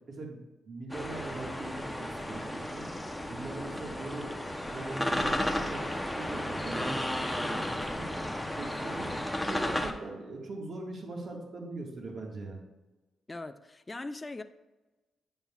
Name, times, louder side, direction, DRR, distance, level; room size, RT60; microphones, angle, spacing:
voice 1, 0.1-0.4 0.6-2.9 3.3-5.9 6.2-8.1 8.6-9.1 9.4-12.6, right 2 dB, 55° right, 0 dB, 1.6 m, -41 dB
sound 1, 0.9-9.9, left 1 dB, 5° left, 0.7 m, -33 dB
voice 2, 13.3-14.4, left 2 dB, 25° left, 10 dB, 0.3 m, -40 dB
9.0 x 5.5 x 2.3 m, 1.1 s
cardioid pair, 70°, 0 cm